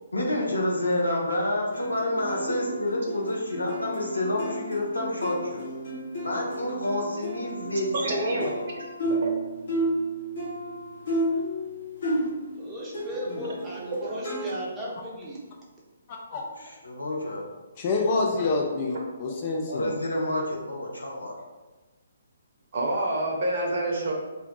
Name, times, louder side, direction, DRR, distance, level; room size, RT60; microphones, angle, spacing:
voice 1, 0.1-5.6 6.2-8.6 13.1-13.4 16.6-17.5 19.6-21.3, left 1 dB, 80° left, -2 dB, 0.7 m, -29 dB
sound 1, 1.7-12.6 12.9-14.5, right 1 dB, 50° left, 1.0 m, -32 dB
voice 2, 7.9-9.3 14.0-14.1 22.7-24.1, right 1 dB, 45° right, 0 dB, 0.7 m, -28 dB
voice 3, 12.6-15.4, equal, 15° right, -5 dB, 0.7 m, -36 dB
voice 4, 17.8-19.9, left 3 dB, 30° left, 0 dB, 0.4 m, -26 dB
2.6 x 2.2 x 3.8 m, 1.2 s
figure-of-eight pair, 135°, 0 cm